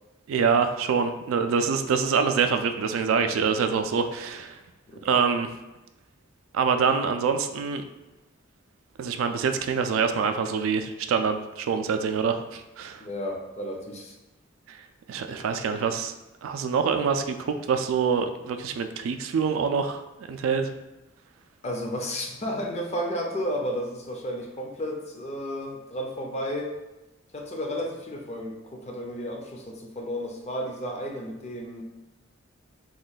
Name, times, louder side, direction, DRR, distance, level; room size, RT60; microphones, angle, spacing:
voice 1, 0.3-4.6 5.0-5.5 6.5-7.8 9.0-13.0 14.7-14.8 15.1-16.1 16.4-20.0 20.3-20.7, right 6 dB, 80° right, 7 dB, 0.3 m, -25 dB
voice 2, 4.9-5.2 13.0-14.1 21.6-26.7 27.3-31.8, equal, 35° left, 1 dB, 0.5 m, -32 dB
2.9 x 2.2 x 4.0 m, 1.0 s
head